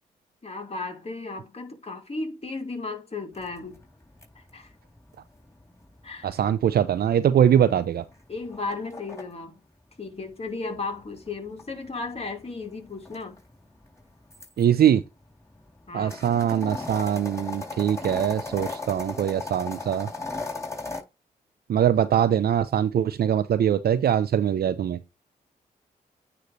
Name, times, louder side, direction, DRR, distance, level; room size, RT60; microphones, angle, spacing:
voice 1, 0.4-3.8 4.4-4.7 6.0-6.3 8.3-9.6 10.0-13.4 15.9-16.2, left 3 dB, 35° left, 2.5 m, -35 dB
sound 1, 3.3-9.2 10.5-14.6 15.2-21.0, left 3 dB, 15° left, 3.9 m, -38 dB
voice 2, 6.2-8.0 14.6-15.0 15.9-20.1 21.7-25.0, right 9 dB, 65° right, 0.6 m, -22 dB
9.4 x 3.3 x 4.0 m
supercardioid pair, 50°, 17 cm